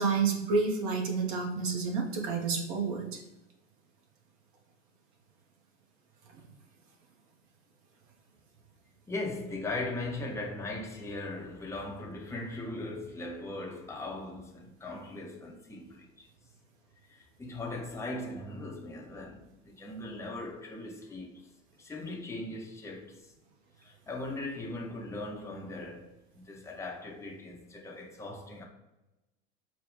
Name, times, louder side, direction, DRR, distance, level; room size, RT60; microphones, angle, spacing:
voice 1, 0.0-3.1, right 4 dB, 45° right, 1.1 m, -29 dB
voice 2, 9.1-16.3 17.1-21.4 21.8-23.3 23.8-28.6, left 2 dB, 5° left, 0.7 m, -39 dB
4.9 x 2.2 x 3.6 m
figure-of-eight pair, 85°, 39 cm